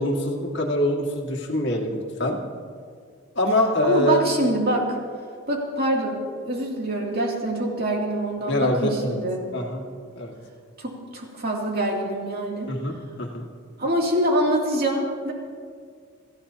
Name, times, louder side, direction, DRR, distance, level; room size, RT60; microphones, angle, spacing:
voice 1, 0.0-2.4 3.4-4.2 8.5-9.2 9.5-9.9 10.2-10.3 12.7-13.5, left 1 dB, 55° left, 0 dB, 1.9 m, -24 dB
voice 2, 3.8-5.0 5.5-9.4 10.8-12.7 13.8-15.3, right 1 dB, 45° right, -2 dB, 2.7 m, -25 dB
25.5 x 15.0 x 2.9 m, 2.1 s
head